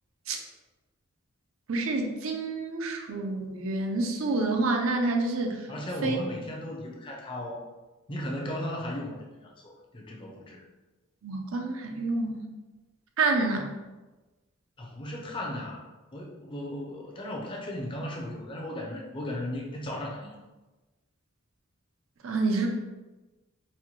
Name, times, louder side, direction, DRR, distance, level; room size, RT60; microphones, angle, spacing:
voice 1, 1.7-5.6 6.0-6.2 11.2-12.5 13.2-13.7 22.2-22.7, right 3 dB, 75° right, 3 dB, 0.5 m, -28 dB
voice 2, 5.7-7.6 8.1-10.6 14.8-15.8 16.1-20.4, left 1 dB, 25° left, -1 dB, 0.5 m, -36 dB
4.2 x 2.2 x 3.0 m, 1.1 s
head